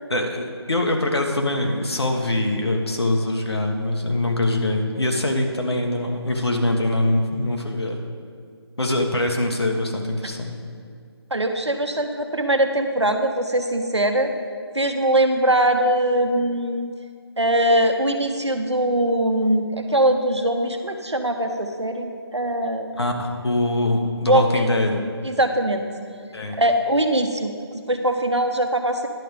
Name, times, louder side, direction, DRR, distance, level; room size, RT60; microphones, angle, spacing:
voice 1, 0.1-8.0 8.8-10.5 22.9-25.0 26.3-26.6, left 1 dB, 70° left, 2 dB, 1.5 m, -23 dB
voice 2, 11.3-14.3 14.7-16.9 17.4-23.0 24.3-24.9 25.2-25.9 26.6-29.1, right 1 dB, 90° right, 5 dB, 1.1 m, -22 dB
11.0 x 5.0 x 7.2 m, 2.2 s
figure-of-eight pair, 155°, 14 cm